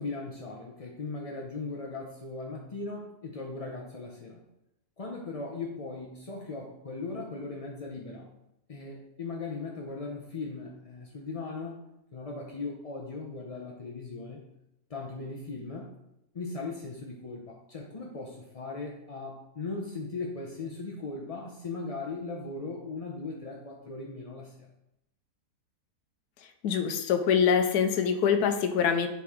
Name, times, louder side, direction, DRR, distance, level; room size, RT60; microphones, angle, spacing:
voice 1, 0.0-4.4 5.0-8.3 8.7-11.8 12.1-14.4 14.9-15.9 16.3-24.7, left 3 dB, 50° left, -1 dB, 0.4 m, -38 dB
voice 2, 26.6-29.1, left 7 dB, 85° left, 7 dB, 1.2 m, -24 dB
7.5 x 4.4 x 3.6 m, 0.84 s
omnidirectional pair, 1.6 m